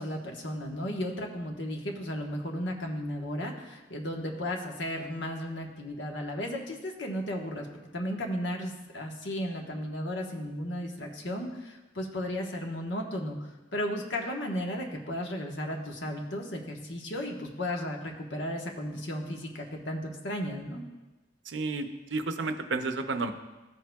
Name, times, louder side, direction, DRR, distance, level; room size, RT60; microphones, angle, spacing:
voice 1, 0.0-7.7 7.9-20.8, equal, 70° left, 1 dB, 1.2 m, -34 dB
voice 2, 21.5-23.3, right 3 dB, 75° right, 8 dB, 0.7 m, -31 dB
14.5 x 7.5 x 2.3 m, 1.1 s
head